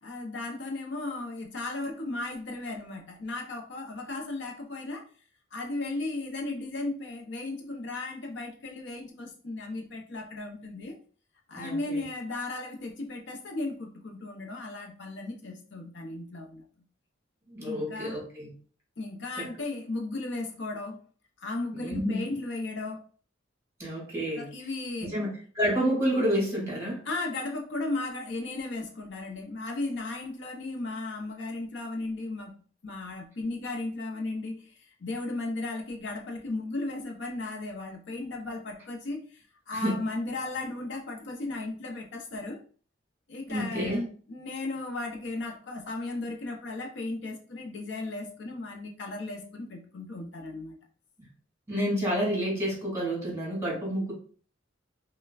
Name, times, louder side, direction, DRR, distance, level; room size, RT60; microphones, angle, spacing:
voice 1, 0.0-5.1 5.5-11.0 11.5-16.6 17.6-18.2 19.0-21.0 21.4-23.0 24.4-25.1 27.1-32.6 32.8-42.6 43.3-50.8, left 2 dB, 65° left, 1 dB, 0.6 m, -35 dB
voice 2, 11.5-12.0 17.5-18.5 19.4-19.5 21.7-22.2 23.8-24.5 25.0-25.3 25.5-27.0 39.7-40.0 43.5-44.1 51.2-51.3 51.7-54.1, equal, 15° right, -4 dB, 1.8 m, -29 dB
5.4 x 2.2 x 2.3 m, 0.42 s
head